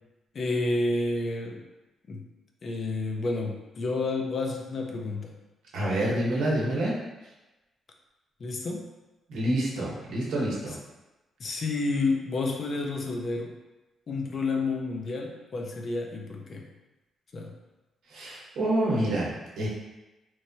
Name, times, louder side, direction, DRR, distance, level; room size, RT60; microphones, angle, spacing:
voice 1, 0.3-1.6 2.1-2.2 2.6-5.3 8.4-8.9 10.7-10.8 11.4-13.5 14.1-16.7 17.3-17.5, left 3 dB, 40° left, 1 dB, 0.4 m, -30 dB
voice 2, 5.7-6.9 9.3-10.8 18.1-19.7, right 1 dB, 85° right, -5 dB, 0.8 m, -27 dB
3.0 x 2.1 x 2.7 m, 1.1 s
cardioid pair, 140°, 0 cm